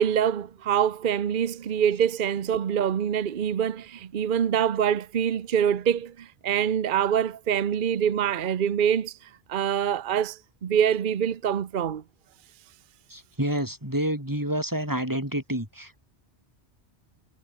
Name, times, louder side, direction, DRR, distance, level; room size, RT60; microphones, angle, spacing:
voice 1, 0.0-12.0, right 8 dB, 50° right, 0.9 m, -25 dB
voice 2, 13.1-16.0, right 1 dB, 15° right, 6.2 m, -28 dB
omnidirectional pair, 1.1 m